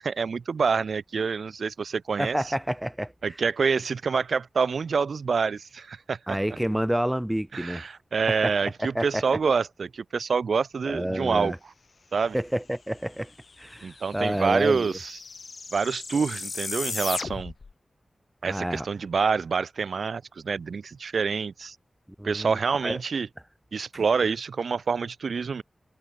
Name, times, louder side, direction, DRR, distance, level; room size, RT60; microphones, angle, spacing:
voice 1, 0.0-2.4 3.2-6.4 7.5-11.5 12.1-12.4 13.8-15.2 15.7-17.5 18.4-21.8 22.2-23.3 23.7-25.6, right 5 dB, 85° right, 4.1 m, -27 dB
voice 2, 2.2-3.3 6.3-7.9 8.4-8.5 8.8-9.2 10.8-11.6 12.3-15.0 18.4-18.9 22.2-23.0 23.9-24.0, equal, 10° right, 6.2 m, -29 dB
sound 1, 13.2-13.3 13.5-17.7, left 4 dB, 65° left, 5.3 m, -36 dB
cardioid pair, 60°, 0 cm